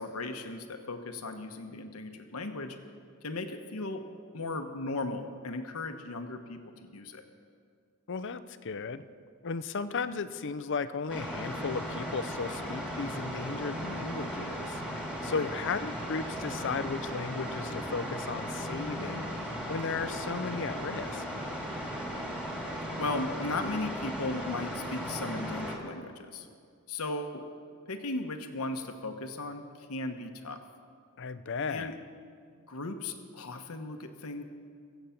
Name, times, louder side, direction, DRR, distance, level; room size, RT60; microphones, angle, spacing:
voice 1, 0.0-2.8 3.2-4.0 4.3-7.2 15.3-15.5 23.0-26.5 26.9-27.4 27.9-30.6 31.7-31.9 32.7-34.4, left 2 dB, 75° left, 6 dB, 1.1 m, -36 dB
voice 2, 8.1-9.0 9.4-14.8 15.2-21.2 31.2-32.0, left 4 dB, 55° left, 13 dB, 0.6 m, -35 dB
sound 1, 11.1-25.8, equal, 5° right, 2.3 m, -36 dB
23.0 x 8.0 x 5.8 m, 2.2 s
head